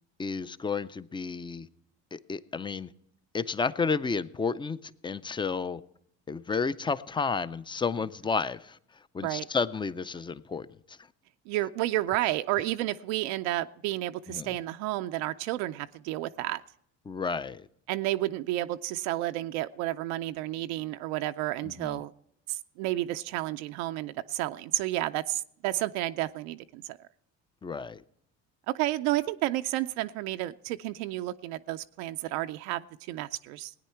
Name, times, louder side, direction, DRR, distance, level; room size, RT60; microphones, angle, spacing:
voice 1, 0.2-1.7 2.1-2.9 3.3-5.8 6.3-8.8 9.1-11.0 14.3-14.6 17.1-17.7 21.6-22.0 27.6-28.0, left 5 dB, 15° left, 17 dB, 0.4 m, -31 dB
voice 2, 11.5-16.6 17.9-22.1 22.5-27.0 28.7-33.7, right 16 dB, 85° right, 9 dB, 0.5 m, -31 dB
18.0 x 9.5 x 4.4 m, 0.70 s
supercardioid pair, 85°, 33 cm